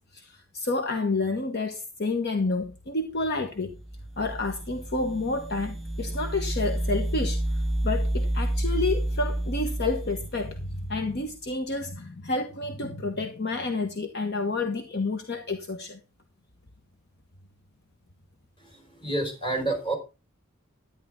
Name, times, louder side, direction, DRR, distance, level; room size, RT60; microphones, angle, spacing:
voice 1, 0.1-3.7 4.2-7.4 7.8-16.0, left 3 dB, 50° left, 6 dB, 1.1 m, -29 dB
sound 1, 3.7-11.2, right 1 dB, ahead, 2.1 m, -30 dB
voice 2, 18.6-19.9, right 2 dB, 25° left, 3 dB, 5.0 m, -29 dB
11.5 x 10.5 x 3.6 m, 0.29 s
head